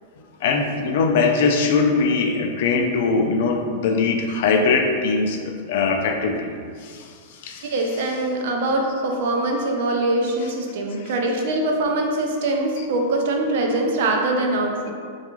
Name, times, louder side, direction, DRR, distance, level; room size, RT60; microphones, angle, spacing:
voice 1, 0.4-6.5 6.8-7.7 11.0-11.1, left 4 dB, 65° left, 3 dB, 0.3 m, -21 dB
voice 2, 7.6-14.9, right 2 dB, 65° right, 1 dB, 0.4 m, -23 dB
2.9 x 2.3 x 2.3 m, 2.1 s
supercardioid pair, 145°, 0 cm